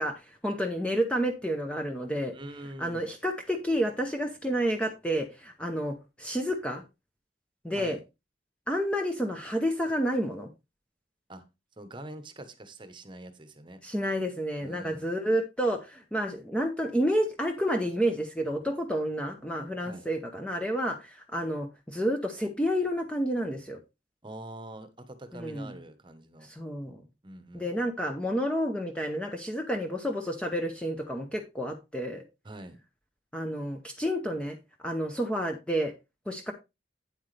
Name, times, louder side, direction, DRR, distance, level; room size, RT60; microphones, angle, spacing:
voice 1, 0.0-2.3 2.8-6.8 7.6-8.0 8.7-10.5 13.8-23.8 25.3-25.7 26.4-27.0 27.5-32.2 33.3-35.9 36.3-36.5, equal, 5° left, 4 dB, 0.7 m, -30 dB
voice 2, 2.3-3.1 7.7-8.0 11.3-11.4 11.8-13.8 14.6-15.1 19.8-20.1 24.2-26.5 27.2-27.9 32.4-32.8, right 1 dB, 25° right, 10 dB, 1.0 m, -44 dB
8.9 x 7.9 x 3.3 m, 0.25 s
head